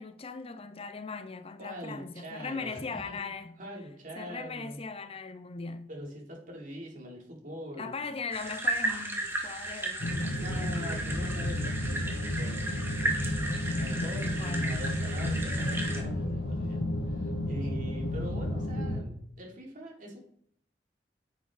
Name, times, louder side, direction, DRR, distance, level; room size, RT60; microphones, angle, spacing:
voice 1, 0.0-3.6 4.2-5.9 7.8-10.9 14.2-14.8, left 4 dB, 35° left, 0.6 m, -39 dB
voice 2, 1.6-3.2 3.6-4.8 5.9-8.0 10.4-12.6 13.6-16.8 17.1-20.2, equal, 50° right, 3.3 m, -43 dB
sound 1, 8.3-16.0, right 1 dB, 15° right, 1.6 m, -35 dB
sound 2, 10.0-19.0, left 1 dB, 85° left, 1.2 m, -32 dB
sound 3, 13.4-18.7, equal, 30° right, 1.9 m, -51 dB
10.5 x 7.2 x 4.1 m
head